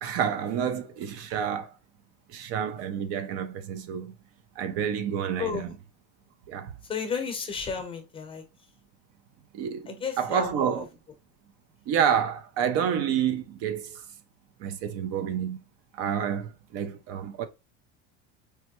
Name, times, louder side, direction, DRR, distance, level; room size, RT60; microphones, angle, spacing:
voice 1, 0.0-1.7 2.3-4.1 4.6-5.7 6.5-6.7 9.5-10.8 11.9-14.0 14.6-15.6 15.9-17.5, right 8 dB, 55° right, 0.5 m, -29 dB
voice 2, 6.9-8.4 9.9-10.8, left 6 dB, 20° left, 0.8 m, -33 dB
4.5 x 2.1 x 2.9 m
cardioid pair, 140°, 29 cm